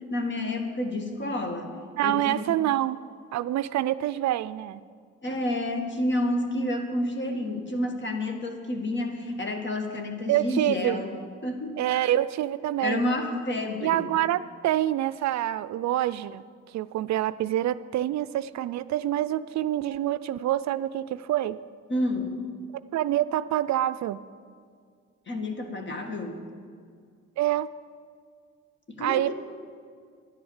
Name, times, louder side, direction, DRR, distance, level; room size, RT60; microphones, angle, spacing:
voice 1, 0.0-1.8 2.0-2.5 5.2-11.1 11.4-12.1 12.8-14.1 21.9-22.4 25.3-26.5 28.9-29.3, left 1 dB, 40° left, 4 dB, 1.9 m, -29 dB
voice 2, 2.0-3.0 3.3-4.8 10.3-11.0 11.8-13.0 13.8-16.4 16.7-21.6 22.9-24.2 27.4-27.7 29.0-29.3, right 13 dB, 65° right, 15 dB, 0.4 m, -26 dB
11.0 x 10.5 x 7.2 m, 2.1 s
cardioid pair, 90°, 30 cm